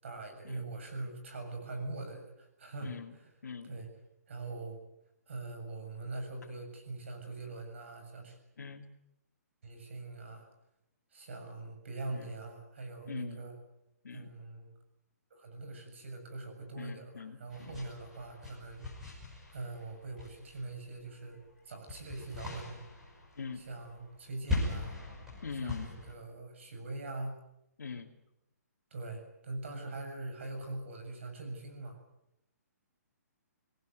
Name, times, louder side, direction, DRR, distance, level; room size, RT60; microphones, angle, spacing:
voice 1, 0.0-3.2 3.6-3.9 4.3-4.8 5.3-8.4 9.6-10.5 11.1-13.5 14.1-14.7 15.3-18.9 19.5-21.4 21.6-22.9 23.6-25.0 25.6-27.4 28.9-32.0, right 2 dB, 45° right, 6 dB, 7.1 m, -42 dB
voice 2, 2.8-3.2 3.4-3.8 8.6-8.9 12.1-12.3 13.1-13.5 14.0-14.3 16.7-17.7 23.4-23.7 25.4-25.9 27.8-28.1, left 5 dB, 90° left, -1 dB, 2.6 m, -42 dB
sound 1, 17.5-21.0 21.3-26.1, left 3 dB, 5° right, 5.7 m, -40 dB
25.5 x 18.5 x 9.3 m, 0.84 s
hypercardioid pair, 180°, 9 cm